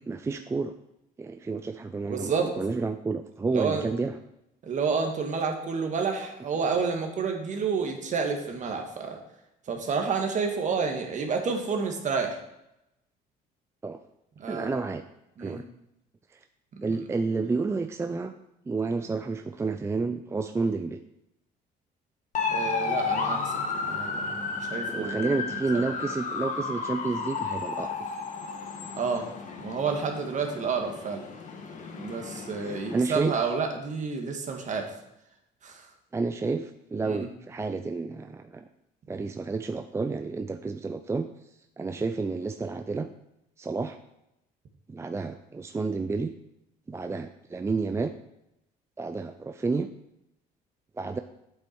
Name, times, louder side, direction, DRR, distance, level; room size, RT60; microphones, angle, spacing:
voice 1, 0.1-0.7 1.2-4.2 13.8-14.0 14.5-15.0 15.4-15.6 16.3-16.4 16.8-18.3 18.7-21.0 24.9-28.0 32.6-33.3 36.1-38.7 39.1-41.3 41.8-43.1 43.6-44.0 44.9-46.3 46.9-48.1 49.0-49.9 51.0-51.2, right 4 dB, 15° right, 8 dB, 0.4 m, -30 dB
voice 2, 2.0-2.5 3.5-3.9 4.6-9.2 9.7-12.4 14.4-14.8 15.4-15.6 16.8-16.9 22.5-25.9 29.0-29.2 29.6-31.2 32.0-34.9 35.6-35.8 37.0-37.3, right 5 dB, 45° right, 4 dB, 1.7 m, -30 dB
sound 1, 22.3-33.0, left 4 dB, 45° left, 1.4 m, -33 dB
8.5 x 7.9 x 4.6 m, 0.85 s
cardioid pair, 110°, 17 cm